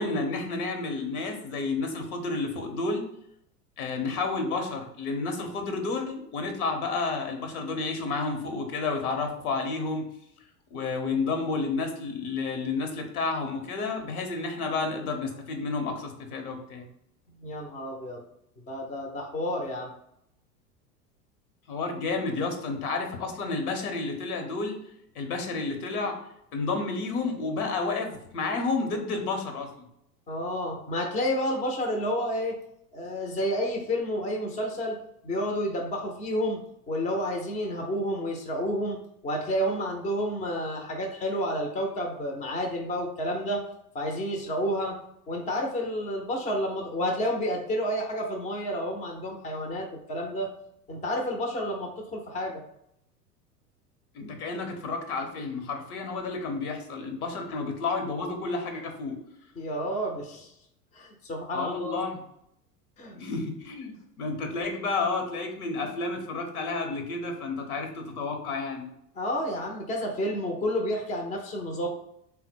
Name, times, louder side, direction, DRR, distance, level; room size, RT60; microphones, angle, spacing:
voice 1, 0.0-3.0 3.8-10.1 10.7-16.9 21.7-24.8 25.1-26.2 26.5-29.7 54.1-59.2 61.5-62.2 63.1-68.9, left 3 dB, 65° left, 4 dB, 1.0 m, -31 dB
voice 2, 17.4-18.2 18.7-19.9 30.3-32.6 32.9-35.0 35.2-36.6 36.9-39.0 39.2-43.6 43.9-45.0 45.3-50.5 50.9-52.6 59.6-60.5 60.9-62.0 63.0-63.2 69.2-71.9, equal, 15° left, 2 dB, 0.6 m, -30 dB
3.6 x 2.2 x 4.3 m, 0.74 s
figure-of-eight pair, 80°, 48 cm